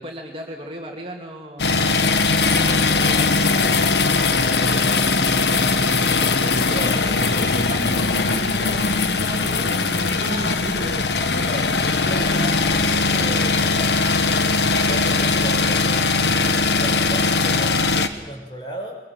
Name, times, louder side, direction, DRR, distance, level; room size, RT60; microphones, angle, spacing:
voice 1, 0.0-1.8 2.5-3.9 4.3-5.2 6.2-6.8 7.0-14.1, right 1 dB, 30° right, 1 dB, 2.4 m, -35 dB
sound 1, 1.6-18.1, left 3 dB, 75° left, 1.4 m, -20 dB
voice 2, 14.8-18.9, right 1 dB, 25° left, 2 dB, 5.2 m, -34 dB
23.0 x 21.0 x 7.7 m, 1.1 s
head